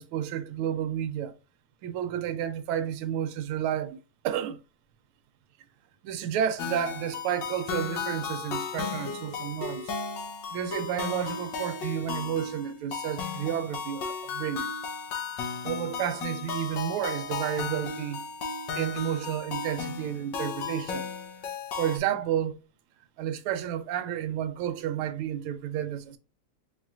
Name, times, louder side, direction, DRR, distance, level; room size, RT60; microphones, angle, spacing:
voice 1, 0.0-1.3 1.8-4.0 4.2-4.6 6.0-9.9 10.5-14.7 15.4-18.2 18.7-21.1 21.8-22.6 23.2-26.2, right 10 dB, 80° right, 1.5 m, -31 dB
sound 1, 6.6-22.0, left 5 dB, 65° left, 1.3 m, -35 dB
4.3 x 3.2 x 2.4 m
omnidirectional pair, 2.4 m